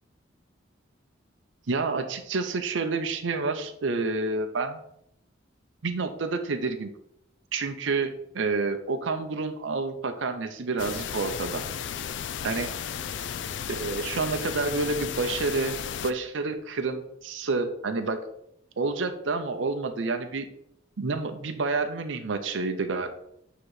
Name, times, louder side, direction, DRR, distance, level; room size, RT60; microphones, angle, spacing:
voice 1, 1.7-4.8 5.8-6.9 7.5-11.6 12.4-12.7 13.7-15.7 16.0-18.2 18.8-20.5 21.0-23.1, right 3 dB, 80° right, 7 dB, 0.6 m, -29 dB
sound 1, 10.8-16.1, left 8 dB, 70° left, 0.4 m, -34 dB
8.3 x 2.9 x 4.8 m, 0.76 s
head